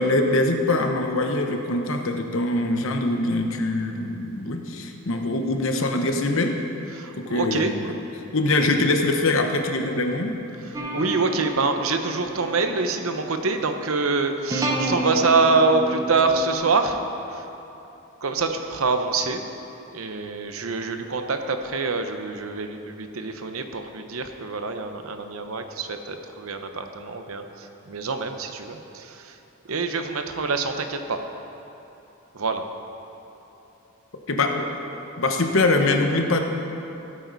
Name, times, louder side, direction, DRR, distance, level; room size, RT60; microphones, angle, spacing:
voice 1, 0.0-6.6 7.1-7.9 8.3-10.3 34.3-34.7 35.2-36.4, left 2 dB, 65° left, 4 dB, 1.0 m, -23 dB
voice 2, 6.9-7.7 10.6-17.5 18.2-19.4 19.9-29.4 29.6-31.2 32.3-32.7, right 4 dB, 70° right, 6 dB, 0.8 m, -25 dB
sound 1, 10.7-16.5, right 1 dB, 15° right, 0.9 m, -31 dB
16.0 x 8.4 x 4.0 m, 2.9 s
head